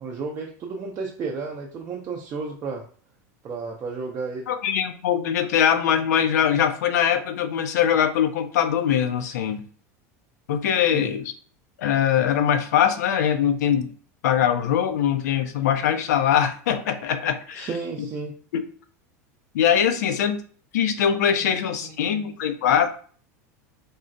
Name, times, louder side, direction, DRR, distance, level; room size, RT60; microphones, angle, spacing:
voice 1, 0.0-2.8 3.4-4.5 10.9-11.1 17.6-18.3 21.4-22.3, right 4 dB, 35° right, 0 dB, 0.5 m, -33 dB
voice 2, 4.5-9.7 10.5-11.3 11.8-13.9 14.2-17.7 18.5-18.6 19.5-20.4 20.7-22.9, left 9 dB, 85° left, 9 dB, 0.4 m, -22 dB
3.7 x 2.0 x 2.6 m, 0.44 s
supercardioid pair, 115°, 9 cm